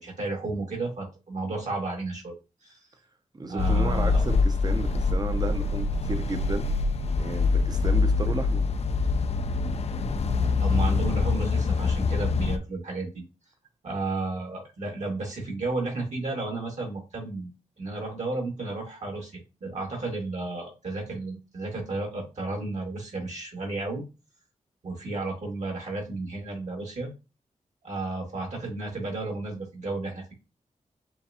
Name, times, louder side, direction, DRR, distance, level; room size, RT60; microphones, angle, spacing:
voice 1, 0.0-2.8 3.5-4.2 10.6-13.2 13.8-17.5 17.8-24.0 24.8-27.1 27.8-30.3, right 2 dB, 60° right, 1.8 m, -33 dB
voice 2, 3.3-6.7 7.2-8.7, right 3 dB, 30° right, 0.7 m, -33 dB
sound 1, 3.6-12.6, left 4 dB, 50° left, 0.4 m, -25 dB
6.9 x 2.3 x 2.7 m
cardioid pair, 75°, 13 cm